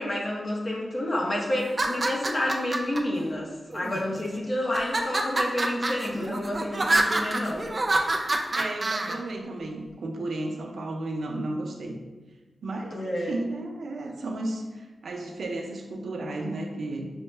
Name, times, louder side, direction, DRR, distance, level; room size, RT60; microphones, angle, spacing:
voice 1, 0.0-7.7 12.9-13.3, left 1 dB, 35° left, -2 dB, 0.8 m, -29 dB
sound 1, 1.6-3.0 3.7-4.3 4.7-9.1, right 2 dB, 30° right, 0.4 m, -26 dB
voice 2, 8.5-12.1 12.6-17.1, right 2 dB, 85° right, 2 dB, 0.5 m, -33 dB
6.3 x 2.1 x 3.2 m, 1.2 s
wide cardioid pair, 140°, 0 cm